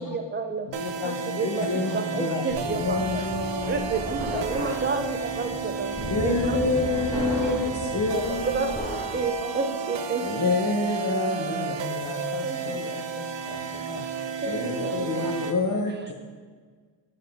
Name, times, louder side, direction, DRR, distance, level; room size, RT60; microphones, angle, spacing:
voice 1, 0.0-0.7 1.0-3.3 3.7-6.6 7.4-7.5 7.9-8.2 8.5-8.7 9.1-10.5 12.4-13.0 14.2-15.0, right 4 dB, 25° right, 6 dB, 0.5 m, -31 dB
voice 2, 0.7-1.7 2.3-2.4 4.3-4.7 5.5-5.6 6.4-6.5 8.1-8.3 9.1-9.2 10.6-10.7 12.0-14.1 14.9-15.2, left 8 dB, 85° left, 7 dB, 0.7 m, -37 dB
sound 1, 0.7-15.6, right 6 dB, 65° right, 0.6 m, -32 dB
voice 3, 1.4-3.9 6.0-8.8 10.2-12.6 14.4-16.1, left 3 dB, 40° left, -1 dB, 0.7 m, -28 dB
sound 2, 2.5-9.2, left 1 dB, 10° left, 1.1 m, -35 dB
7.0 x 5.8 x 3.4 m, 1.5 s
wide cardioid pair, 120°, 47 cm